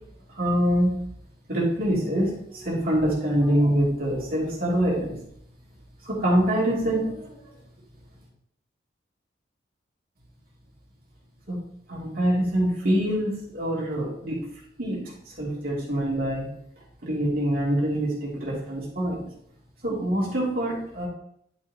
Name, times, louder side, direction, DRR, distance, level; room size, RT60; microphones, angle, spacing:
voice 1, 0.3-0.9 1.5-5.1 6.1-7.4 11.5-11.6 11.9-14.4 14.8-15.0 15.4-16.5 17.0-19.2 19.8-21.1, equal, 50° right, -6 dB, 2.6 m, -25 dB
10.5 x 6.0 x 2.8 m, 0.70 s
head